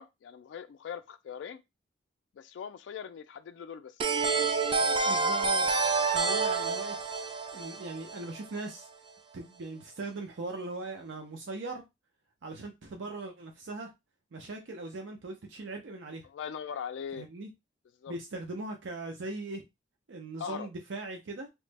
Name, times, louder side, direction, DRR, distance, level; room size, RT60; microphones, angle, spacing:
voice 1, 0.0-1.6 2.4-4.0 6.7-6.8 16.2-17.3 18.0-18.2 20.4-20.7, left 7 dB, 75° left, 0.3 m, -41 dB
sound 1, 4.0-8.6, right 4 dB, 30° right, 0.4 m, -28 dB
voice 2, 5.1-5.7 6.1-7.0 7.5-8.9 9.3-11.8 12.4-13.9 14.3-16.3 17.1-17.5 18.1-19.6 20.1-21.5, right 2 dB, 80° right, 0.5 m, -39 dB
3.1 x 2.0 x 3.3 m
head